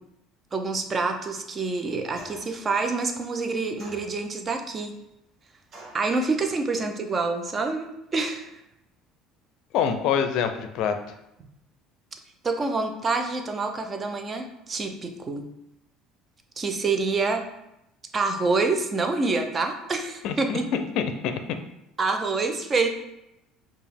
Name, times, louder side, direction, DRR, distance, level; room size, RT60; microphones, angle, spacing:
voice 1, 0.5-4.9 5.9-8.5 12.4-15.5 16.6-17.4 18.1-20.7 22.0-22.9, right 3 dB, 30° right, 5 dB, 0.5 m, -27 dB
sound 1, 2.2-2.6 3.8-4.5 5.7-6.1, right 1 dB, 45° right, 1.0 m, -46 dB
voice 2, 9.7-11.0 20.2-21.4, left 7 dB, 65° left, 8 dB, 0.4 m, -26 dB
4.7 x 2.3 x 3.5 m, 0.85 s
supercardioid pair, 110°, 0 cm